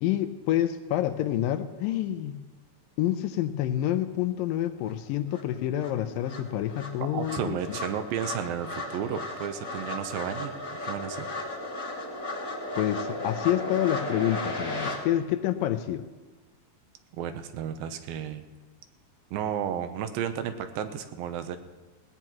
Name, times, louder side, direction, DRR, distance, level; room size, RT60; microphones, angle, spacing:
voice 1, 0.0-2.4 3.0-7.6 12.8-16.0, left 12 dB, 80° left, 10 dB, 2.2 m, -28 dB
sound 1, 4.9-5.0 5.3-15.0, left 2 dB, 45° left, 1.1 m, -35 dB
voice 2, 7.0-10.5 10.8-11.3 17.1-18.4 19.3-21.6, right 9 dB, 85° right, 9 dB, 2.6 m, -33 dB
19.5 x 18.5 x 3.0 m, 1.2 s
omnidirectional pair, 4.2 m